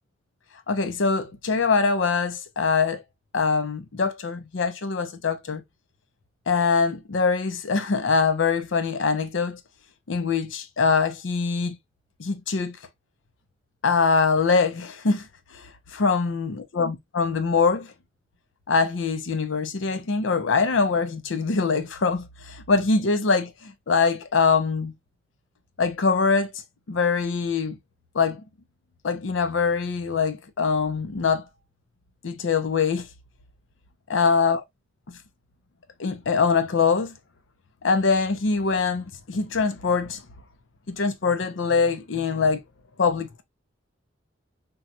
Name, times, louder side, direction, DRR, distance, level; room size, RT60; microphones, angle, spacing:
voice 1, 0.7-3.0 3.3-5.6 6.5-9.6 10.1-11.8 12.2-12.8 13.8-15.3 15.5-15.6 15.9-17.9 18.7-24.9 25.8-26.5 26.9-27.8 28.1-28.4 29.0-31.4 32.2-33.1 34.1-34.6 36.0-37.1 37.8-40.2 40.9-42.6 43.0-43.4, left 4 dB, 75° left, 0.6 m, -23 dB
4.1 x 2.3 x 2.3 m
head